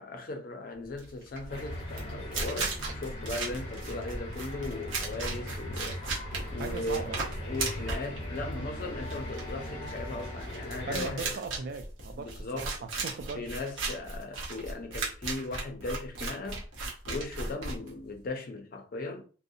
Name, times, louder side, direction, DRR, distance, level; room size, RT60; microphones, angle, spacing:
voice 1, 0.0-6.0 6.5-7.1 7.4-11.3 12.1-12.7 13.3-16.7 17.1-19.2, left 2 dB, 50° left, 0.5 m, -38 dB
sound 1, 0.9-18.3, right 3 dB, 85° right, 0.8 m, -36 dB
sound 2, 1.5-11.1, left 1 dB, 30° left, 0.9 m, -39 dB
voice 2, 6.6-7.2 10.9-13.5, right 4 dB, 55° right, 0.3 m, -39 dB
2.5 x 2.0 x 2.6 m
head